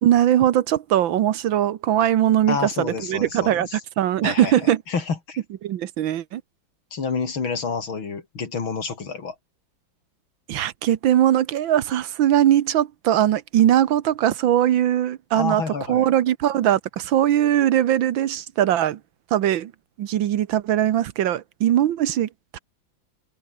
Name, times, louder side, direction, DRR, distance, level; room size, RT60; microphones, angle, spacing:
voice 1, 0.0-4.8 5.6-6.4 10.5-15.6 15.9-19.0 19.3-19.7 20.0-22.6, right 11 dB, 75° right, 1.7 m, -20 dB
voice 2, 2.5-3.8 4.2-5.4 6.9-9.4 15.3-16.1, left 5 dB, 80° left, 3.8 m, -29 dB
omnidirectional pair, 2.2 m